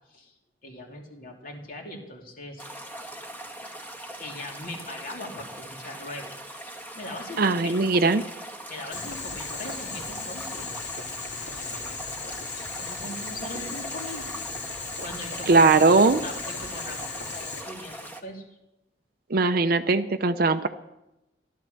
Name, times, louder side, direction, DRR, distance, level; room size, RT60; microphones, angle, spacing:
voice 1, 0.6-2.6 4.2-6.3 6.6-7.8 8.7-10.7 11.8-14.3 14.6-18.6, left 1 dB, 50° left, 1 dB, 2.9 m, -40 dB
sound 1, 2.6-18.2, right 1 dB, 10° left, 1.4 m, -41 dB
voice 2, 7.4-8.2 15.5-16.2 19.3-20.7, right 3 dB, 55° right, 8 dB, 0.6 m, -20 dB
Boiling, 8.9-17.6, left 3 dB, 70° left, 3.1 m, -36 dB
15.0 x 12.0 x 6.6 m, 0.93 s
head